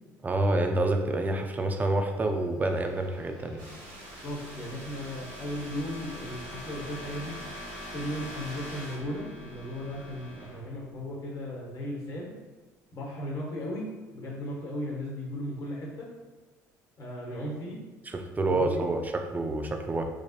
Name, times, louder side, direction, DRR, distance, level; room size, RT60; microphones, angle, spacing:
voice 1, 0.2-3.6 18.1-20.0, right 2 dB, 20° right, 4 dB, 0.4 m, -28 dB
sound 1, 2.0-11.7, left 1 dB, 75° left, 0.9 m, -45 dB
sound 2, 3.6-9.0, right 1 dB, 70° right, 1.0 m, -48 dB
voice 2, 4.2-7.4 7.9-12.3 12.9-13.9 14.1-16.1 17.0-17.8 18.4-18.8, left 1 dB, 50° left, -4 dB, 1.1 m, -36 dB
3.1 x 2.1 x 2.7 m, 1.3 s
hypercardioid pair, 70°, 8 cm